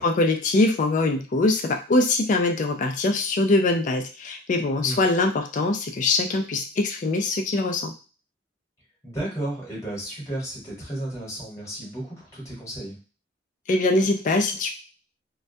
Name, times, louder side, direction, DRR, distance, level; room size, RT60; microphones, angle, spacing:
voice 1, 0.0-7.9 13.7-14.7, left 2 dB, 45° left, 3 dB, 0.3 m, -23 dB
voice 2, 9.0-13.0, right 1 dB, 15° left, -5 dB, 1.1 m, -33 dB
2.2 x 2.2 x 2.6 m, 0.34 s
head